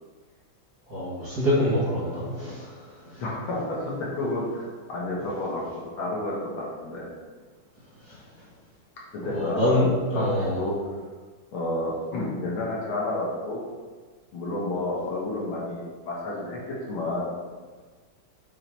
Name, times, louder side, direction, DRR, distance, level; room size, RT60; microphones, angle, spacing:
voice 1, 0.9-2.7 9.3-9.9 10.1-10.6, left 1 dB, 45° right, -10 dB, 2.0 m, -25 dB
voice 2, 3.2-7.1 9.1-10.8 11.5-13.6 14.3-17.3, left 1 dB, 85° left, -4 dB, 2.1 m, -30 dB
8.6 x 3.1 x 4.5 m, 1.4 s
omnidirectional pair, 2.2 m